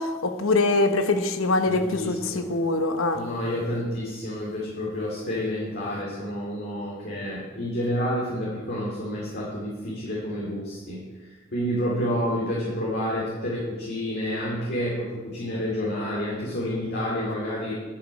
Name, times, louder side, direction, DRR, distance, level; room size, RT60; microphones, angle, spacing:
voice 1, 0.0-3.2, left 2 dB, 80° left, 8 dB, 1.0 m, -23 dB
voice 2, 1.7-2.5 3.1-17.7, equal, 50° left, -6 dB, 2.4 m, -29 dB
10.5 x 8.3 x 5.3 m, 1.3 s
head